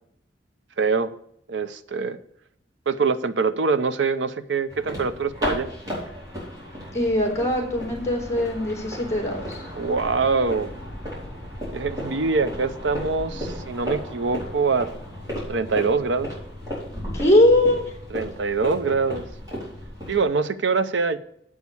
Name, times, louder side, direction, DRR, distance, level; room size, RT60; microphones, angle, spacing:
voice 1, 0.8-1.1 1.5-2.2 2.9-5.7 9.7-10.7 11.7-14.9 15.5-16.3 18.1-19.2 20.1-21.2, right 4 dB, 85° right, 12 dB, 0.6 m, -24 dB
sound 1, 4.7-20.2, equal, 20° right, 4.6 m, -34 dB
voice 2, 6.9-9.6 17.1-17.9, left 1 dB, 15° left, 0 dB, 3.2 m, -21 dB
8.3 x 6.4 x 7.0 m, 0.71 s
head